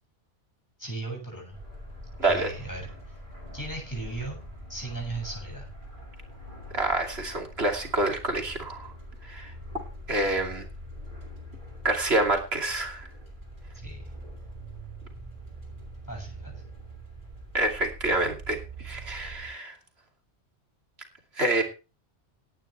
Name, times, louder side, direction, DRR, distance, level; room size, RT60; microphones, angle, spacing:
voice 1, 0.8-1.6 2.2-3.2 3.5-4.4 4.7-5.7 13.7-14.0 16.1-16.6, right 2 dB, 15° left, 1 dB, 7.6 m, -37 dB
sound 1, 1.5-19.5, equal, 40° right, 6.2 m, -43 dB
voice 2, 2.2-2.5 6.7-8.9 9.2-9.5 10.1-10.7 11.8-13.1 17.5-19.8 21.4-21.6, right 2 dB, 55° right, 4 dB, 3.0 m, -27 dB
17.5 x 11.5 x 3.3 m, 0.32 s
omnidirectional pair, 1.2 m